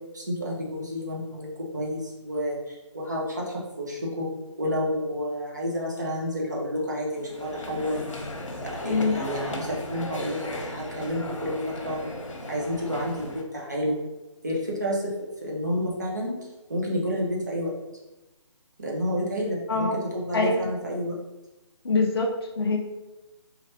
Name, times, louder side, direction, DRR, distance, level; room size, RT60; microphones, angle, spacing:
voice 1, 0.1-4.3 4.6-8.3 8.6-12.1 12.5-14.0 14.4-16.3 16.7-17.7 18.8-19.9 20.1-21.2, equal, 35° right, -3 dB, 0.6 m, -30 dB
sound 1, 7.1-13.4, left 1 dB, 85° left, 0.8 m, -36 dB
voice 2, 8.8-9.2 19.7-20.0 20.3-20.7 21.8-22.3 22.6-22.8, left 3 dB, 50° left, 0 dB, 0.4 m, -24 dB
3.2 x 2.3 x 2.7 m, 1.0 s
hypercardioid pair, 180°, 16 cm